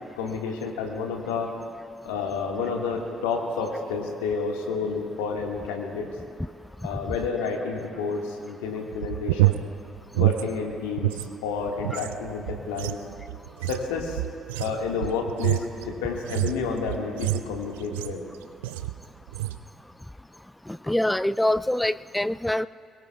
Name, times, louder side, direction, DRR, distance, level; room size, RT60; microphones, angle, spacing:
voice 1, 0.2-1.5 2.0-6.1 6.8-9.6 10.2-13.0 13.6-14.2 14.5-18.2, left 5 dB, 80° left, 1 dB, 1.7 m, -30 dB
sound 1, 8.9-11.3 11.6-18.3 18.6-19.0 19.3-19.6, right 17 dB, 80° right, 0.3 m, -28 dB
voice 2, 20.7-22.7, left 1 dB, 10° left, 17 dB, 0.3 m, -25 dB
24.0 x 21.5 x 2.3 m, 2.3 s
hypercardioid pair, 45°, 0 cm